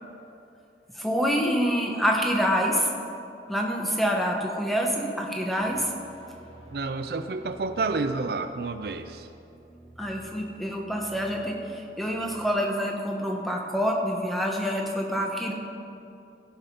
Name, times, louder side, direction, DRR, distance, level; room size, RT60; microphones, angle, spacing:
voice 1, 0.9-2.9 3.5-5.9 10.0-15.5, equal, ahead, 0 dB, 1.1 m, -26 dB
sound 1, 5.5-12.4, right 1 dB, 30° right, 1.5 m, -51 dB
voice 2, 6.7-9.3, right 3 dB, 60° right, 9 dB, 0.4 m, -29 dB
16.0 x 5.6 x 5.4 m, 2.7 s
head